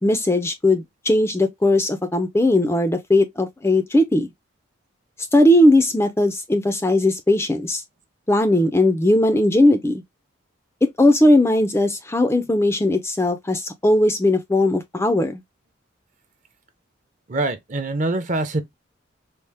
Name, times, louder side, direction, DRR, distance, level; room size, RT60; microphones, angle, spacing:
voice 1, 0.0-4.3 5.3-7.8 8.3-10.0 10.8-15.4, left 1 dB, 10° left, 0.3 m, -18 dB
voice 2, 17.3-18.6, right 2 dB, 40° right, 0.6 m, -24 dB
4.1 x 2.0 x 3.3 m
head